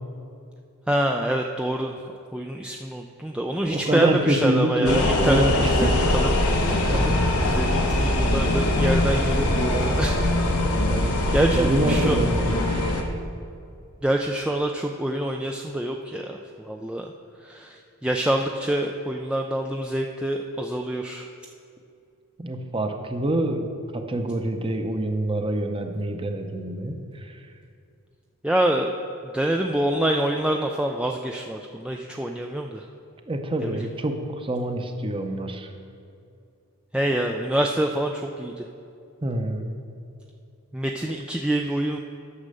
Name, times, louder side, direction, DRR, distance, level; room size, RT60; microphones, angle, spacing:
voice 1, 0.9-2.0 2.3-6.3 6.7-10.3 10.9-12.2 14.0-17.1 17.4-21.3 28.4-28.9 29.2-32.9 33.6-33.9 36.9-38.7 40.7-42.0, right 1 dB, 5° right, 2 dB, 0.3 m, -26 dB
voice 2, 3.6-5.9 6.9-7.1 10.9-11.1 11.4-13.2 22.4-23.7 23.9-27.4 33.3-35.7 39.2-39.7, right 1 dB, 25° right, 6 dB, 0.7 m, -26 dB
sound 1, 4.8-13.0, left 1 dB, 85° left, 1.1 m, -22 dB
9.7 x 6.4 x 6.7 m, 2.5 s
head